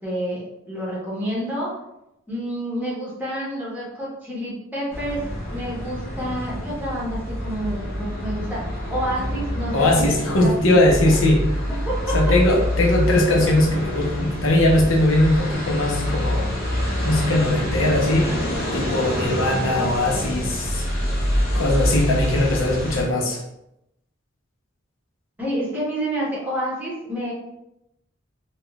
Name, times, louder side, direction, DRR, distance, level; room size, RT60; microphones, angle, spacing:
voice 1, 0.0-1.7 2.3-10.1 10.4-10.6 11.0-11.2 11.8-12.2 25.4-27.3, equal, 10° right, -7 dB, 1.0 m, -29 dB
sound 1, 4.9-23.0, equal, 50° left, 0.8 m, -26 dB
voice 2, 9.7-11.4 12.1-16.5 17.0-18.4 18.7-20.8 21.5-23.4, left 1 dB, 80° left, -1 dB, 0.7 m, -20 dB
3.7 x 2.2 x 2.3 m, 0.84 s
head